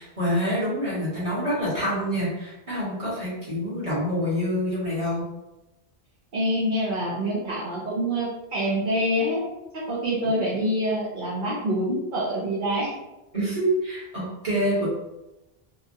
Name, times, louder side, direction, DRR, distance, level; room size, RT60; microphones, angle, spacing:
voice 1, 0.0-5.3 13.3-14.9, equal, 35° right, -8 dB, 1.4 m, -26 dB
voice 2, 6.3-9.5 9.9-12.9, equal, 55° right, -7 dB, 0.8 m, -26 dB
3.1 x 2.3 x 2.6 m, 0.98 s
omnidirectional pair, 1.0 m